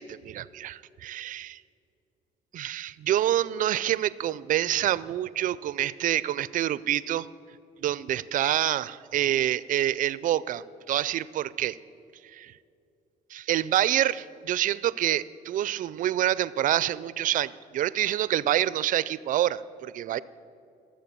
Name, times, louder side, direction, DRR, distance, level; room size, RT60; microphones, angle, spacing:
voice 1, 0.0-1.6 2.5-7.3 7.8-11.8 12.3-12.5 13.3-20.2, right 12 dB, 50° right, 18 dB, 0.4 m, -27 dB
14.5 x 7.5 x 6.8 m, 2.6 s
cardioid pair, 110°, 17 cm